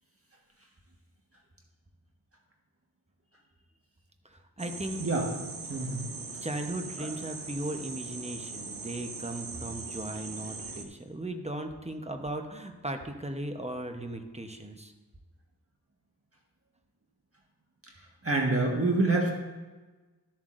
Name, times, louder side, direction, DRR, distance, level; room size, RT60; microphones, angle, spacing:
voice 1, 4.2-5.1 6.4-14.9, right 1 dB, 15° right, 5 dB, 0.9 m, -37 dB
sound 1, 4.6-10.8, right 4 dB, 60° right, 1.0 m, -41 dB
voice 2, 5.7-6.1 7.0-7.1 18.2-19.3, right 2 dB, 35° right, 0 dB, 1.5 m, -26 dB
13.0 x 7.4 x 2.5 m, 1.2 s
wide cardioid pair, 60°, 39 cm